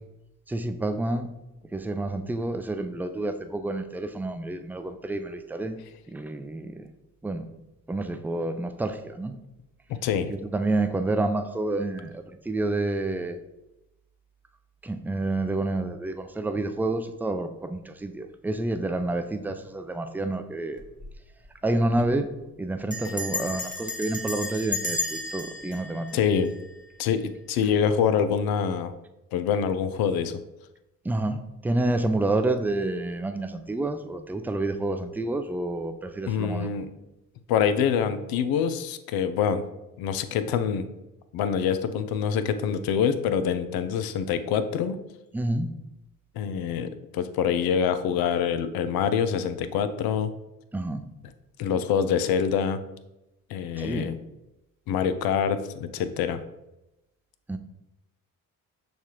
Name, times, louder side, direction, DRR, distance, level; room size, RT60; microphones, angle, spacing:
voice 1, 0.5-1.3 1.7-5.8 6.1-6.9 7.2-7.5 7.9-9.3 10.3-13.4 14.8-20.8 21.6-22.3 22.6-26.2 31.0-36.7 45.3-45.7 50.7-51.0 53.8-54.1 57.5-57.6, right 2 dB, 5° right, 8 dB, 0.3 m, -29 dB
voice 2, 9.9-10.3 26.1-26.5 27.0-28.9 29.3-30.4 36.3-36.9 37.5-39.6 40.0-40.9 41.3-45.0 46.4-50.3 51.6-52.8 53.5-54.2 54.9-56.4, left 7 dB, 80° left, 11 dB, 0.5 m, -25 dB
Bell, 20.8-21.1 21.4-21.5 21.7-22.1 22.9-27.0, left 2 dB, 20° left, 0.9 m, -33 dB
6.4 x 2.4 x 2.9 m, 0.94 s
supercardioid pair, 65°, 36 cm